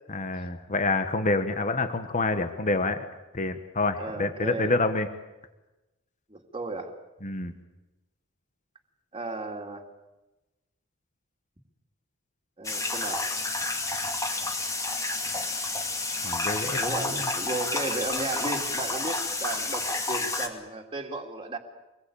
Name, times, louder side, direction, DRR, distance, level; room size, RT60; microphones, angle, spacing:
voice 1, 0.1-3.0 3.3-5.1 7.2-7.5 16.2-17.3, left 3 dB, 35° left, 9 dB, 1.4 m, -27 dB
voice 2, 4.0-4.7 6.3-6.9 9.1-9.9 12.6-13.2 16.8-21.6, right 2 dB, 25° right, 1 dB, 2.6 m, -35 dB
sound 1, 12.6-20.5, left 2 dB, 15° left, 2.5 m, -30 dB
25.5 x 20.5 x 8.7 m, 1.1 s
head